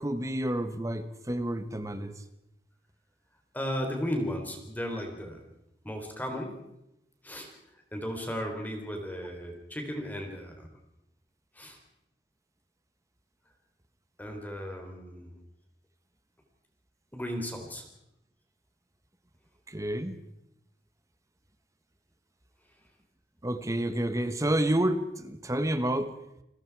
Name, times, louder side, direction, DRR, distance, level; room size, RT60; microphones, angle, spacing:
voice 1, 0.0-2.2 19.7-20.2 23.4-26.1, right 1 dB, 20° right, 10 dB, 1.3 m, -29 dB
voice 2, 3.5-5.4 5.8-6.6 7.2-7.5 7.9-10.8 11.5-11.8 14.2-15.4 17.1-17.9, equal, 10° left, 3 dB, 3.6 m, -35 dB
30.0 x 20.5 x 4.8 m, 0.84 s
head